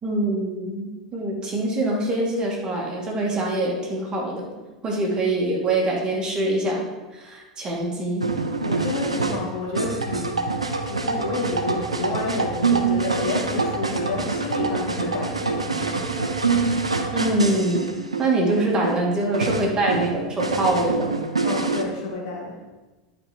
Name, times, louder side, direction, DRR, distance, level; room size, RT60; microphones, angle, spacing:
voice 1, 0.0-4.5 4.8-6.9 7.1-8.2 17.1-17.9 18.2-21.2, right 2 dB, 25° right, -2 dB, 2.4 m, -24 dB
sound 1, 8.2-21.8, right 4 dB, 90° right, 0.7 m, -25 dB
voice 2, 8.6-16.2 21.4-22.6, left 3 dB, 60° left, 0 dB, 2.0 m, -30 dB
11.0 x 5.0 x 4.5 m, 1.2 s
figure-of-eight pair, 85°, 3 cm